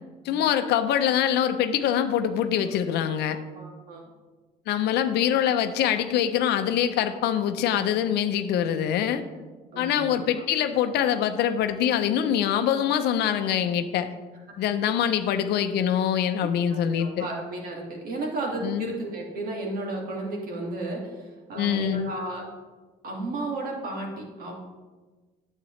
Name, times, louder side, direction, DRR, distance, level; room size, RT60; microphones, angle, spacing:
voice 1, 0.2-3.4 4.7-9.2 9.8-14.1 14.6-17.3 18.6-18.9 21.6-22.1, left 9 dB, 75° left, 9 dB, 0.6 m, -24 dB
voice 2, 3.3-4.0 9.7-10.4 14.9-15.0 16.7-22.5 23.0-24.5, right 2 dB, 60° right, -1 dB, 2.1 m, -33 dB
9.3 x 7.5 x 3.2 m, 1.3 s
cardioid pair, 110°, 17 cm